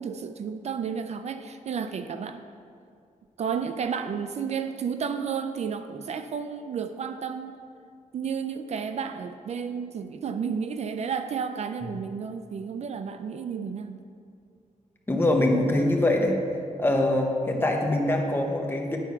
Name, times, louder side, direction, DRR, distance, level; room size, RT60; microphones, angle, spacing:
voice 1, 0.0-2.4 3.4-7.6 8.1-14.0, right 6 dB, 55° right, 9 dB, 0.4 m, -32 dB
voice 2, 15.1-16.4 16.8-19.0, left 1 dB, 15° left, 1 dB, 0.9 m, -23 dB
10.0 x 4.4 x 5.8 m, 2.3 s
wide cardioid pair, 145°, 13 cm